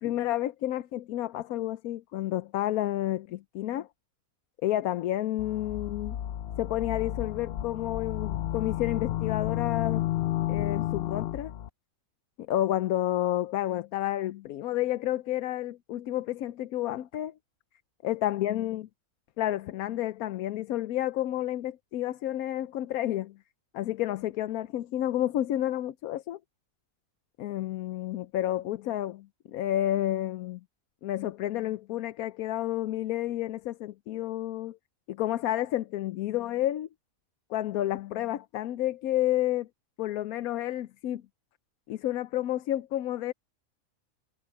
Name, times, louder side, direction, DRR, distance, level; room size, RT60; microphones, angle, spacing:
voice 1, 0.0-3.9 4.6-6.2 6.6-10.0 10.5-11.5 12.4-17.3 18.0-18.9 19.4-23.4 23.7-26.4 27.4-30.6 31.0-34.8 35.1-36.9 37.5-39.7 40.0-41.2 41.9-43.3, left 13 dB, 90° left, 1.1 m, -30 dB
sound 1, 5.4-11.7, left 13 dB, 65° left, 0.6 m, -32 dB
omnidirectional pair, 1.5 m